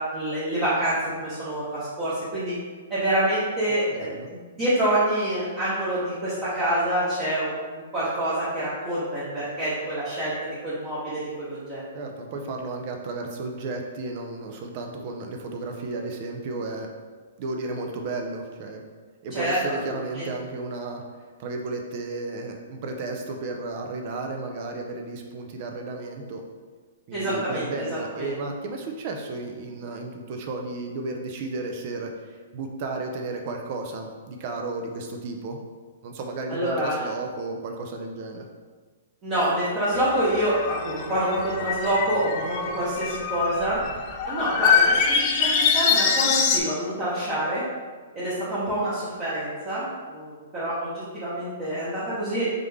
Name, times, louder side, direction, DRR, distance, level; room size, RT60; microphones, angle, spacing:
voice 1, 0.0-2.6 2.9-11.8 19.3-19.6 20.1-20.2 27.1-28.3 36.5-37.1 39.2-43.8 44.3-47.6 48.1-52.5, right 1 dB, 20° right, -11 dB, 1.0 m, -27 dB
voice 2, 3.7-4.3 11.9-16.9 17.4-18.8 19.2-21.0 21.4-26.4 27.1-35.6 36.0-38.5, right 3 dB, 35° right, 2 dB, 0.5 m, -33 dB
sound 1, 39.9-46.6, left 6 dB, 30° left, 0.4 m, -24 dB
3.7 x 3.3 x 3.4 m, 1.4 s
hypercardioid pair, 165°, 0 cm